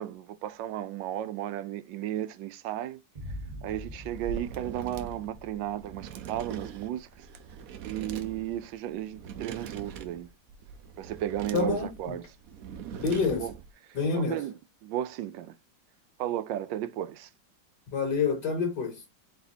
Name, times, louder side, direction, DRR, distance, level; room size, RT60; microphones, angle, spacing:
voice 1, 0.0-3.0 3.6-7.3 7.8-10.3 11.0-12.2 13.4-13.5 14.1-14.5 14.8-15.6 16.2-17.3, right 12 dB, 85° right, 1.3 m, -34 dB
sound 1, 3.1-10.5, equal, 35° right, 0.8 m, -46 dB
sound 2, 4.1-13.7, right 7 dB, 65° right, 0.9 m, -42 dB
voice 2, 11.5-12.1 13.0-13.5 13.9-14.4 17.9-19.0, left 5 dB, 65° left, 2.4 m, -28 dB
4.4 x 4.0 x 2.8 m
omnidirectional pair, 1.9 m